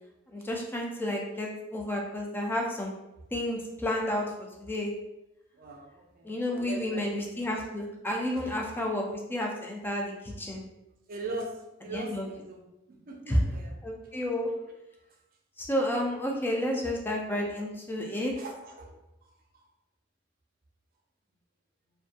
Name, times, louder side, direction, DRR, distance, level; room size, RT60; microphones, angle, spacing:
voice 1, 0.3-2.9 3.3-4.9 6.2-9.0 9.3-10.6 11.9-12.3 13.3-13.4 13.8-14.5 15.6-18.3, left 1 dB, 10° left, 0 dB, 0.4 m, -31 dB
voice 2, 5.6-6.3 6.5-7.5 11.1-11.5 11.8-12.6 12.9-13.8 14.0-14.1 18.3-18.9 19.2-19.6, right 2 dB, 50° right, 1 dB, 0.5 m, -40 dB
2.6 x 2.3 x 2.5 m, 0.92 s
head